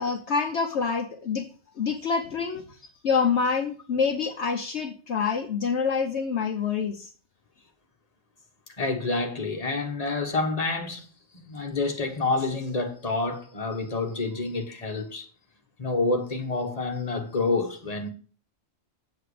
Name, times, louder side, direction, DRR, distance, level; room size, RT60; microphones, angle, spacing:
voice 1, 0.0-1.5 1.8-2.8 3.0-7.1, left 5 dB, 65° left, 1.1 m, -26 dB
voice 2, 8.8-11.0 11.3-15.3 15.8-18.1, left 3 dB, 30° left, 1.5 m, -28 dB
7.8 x 7.7 x 5.0 m
omnidirectional pair, 1.3 m